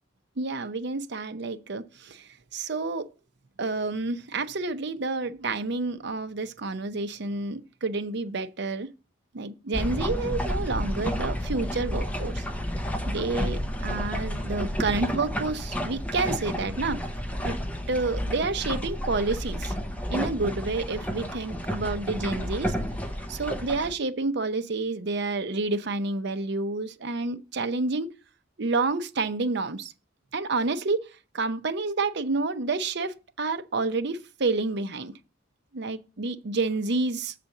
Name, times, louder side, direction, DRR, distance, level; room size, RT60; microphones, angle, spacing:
voice 1, 0.4-3.1 3.6-8.9 9.3-12.4 13.1-17.0 17.4-17.6 17.9-19.7 20.1-22.8 23.3-28.1 28.6-29.9 30.3-31.1 31.3-35.1 35.7-37.3, right 3 dB, 55° right, 0.7 m, -29 dB
sound 1, 9.7-23.9, equal, 5° left, 0.8 m, -31 dB
7.1 x 4.2 x 6.5 m
head